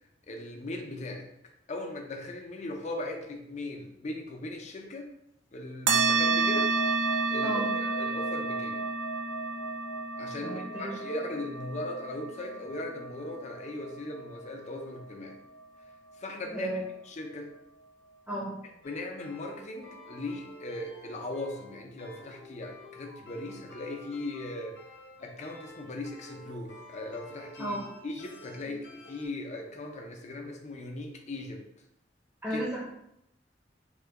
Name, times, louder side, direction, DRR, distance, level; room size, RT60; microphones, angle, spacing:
voice 1, 0.3-1.3 1.7-5.1 5.5-6.7 7.3-7.6 8.0-8.9 10.2-15.4 16.2-16.7 17.1-17.5 18.8-24.8 25.2-27.8 28.0-31.6 32.5-32.6, left 2 dB, 40° left, 2 dB, 0.5 m, -38 dB
sound 1, 5.9-14.8, right 4 dB, 85° right, 0.4 m, -30 dB
voice 2, 7.4-7.7 10.4-10.9 16.5-16.8 18.3-18.6 27.6-27.8 32.4-32.8, right 1 dB, 10° right, -7 dB, 0.7 m, -33 dB
sound 2, 18.8-29.3, left 1 dB, 75° left, 0.7 m, -50 dB
3.7 x 2.2 x 3.4 m, 0.79 s
head